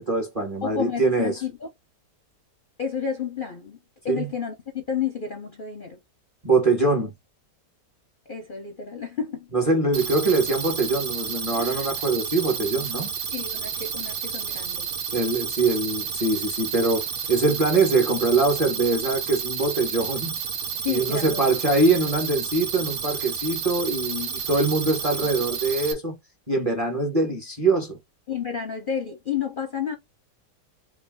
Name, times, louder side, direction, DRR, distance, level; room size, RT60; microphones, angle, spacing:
voice 1, 0.0-1.4 4.1-4.3 6.4-7.1 9.5-13.1 15.1-20.3 20.9-26.2 26.5-28.0, right 3 dB, 25° right, 0.9 m, -23 dB
voice 2, 0.6-1.7 2.8-3.8 4.0-6.0 8.3-9.5 11.6-11.9 13.3-14.9 20.7-21.3 28.3-30.0, left 7 dB, 50° left, 0.6 m, -31 dB
sound 1, 9.9-25.9, right 7 dB, 70° right, 1.6 m, -31 dB
3.5 x 2.8 x 3.4 m
omnidirectional pair, 1.8 m